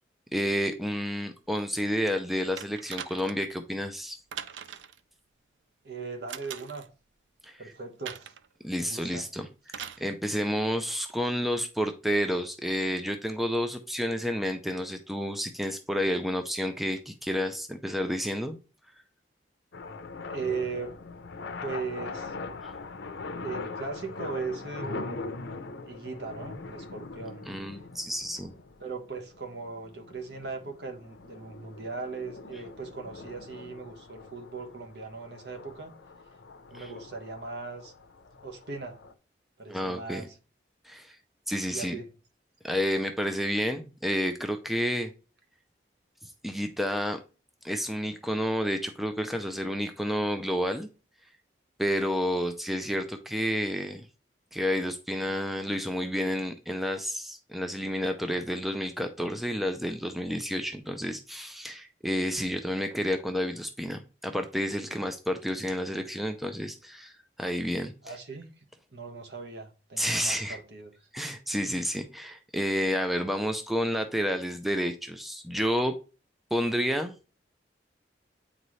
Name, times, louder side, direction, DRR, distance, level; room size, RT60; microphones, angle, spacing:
voice 1, 0.3-4.2 7.4-7.6 8.6-9.5 10.0-18.6 27.5-28.5 36.7-36.9 39.7-40.3 40.8-41.2 41.5-42.0 42.6-45.1 46.2-47.2 47.6-50.9 51.8-54.0 54.5-67.1 67.4-67.9 70.0-70.6 71.1-75.9 76.5-77.1, equal, ahead, 0.4 m, -30 dB
sound 1, 2.6-3.5 4.3-5.0 6.3-6.9 8.0-8.5 9.7-10.1 11.1-11.2, right 8 dB, 90° right, 0.5 m, -41 dB
voice 2, 5.8-6.8 7.6-8.3 8.7-9.3 20.3-21.0 21.6-22.5 23.4-25.4 25.8-27.5 28.8-36.0 36.7-37.9 38.4-39.0 39.6-40.4 41.7-42.1 68.0-68.5 68.9-70.9, right 4 dB, 65° right, 1.1 m, -38 dB
sound 2, 19.7-39.1, left 3 dB, 85° left, 0.6 m, -42 dB
8.8 x 4.1 x 3.1 m
head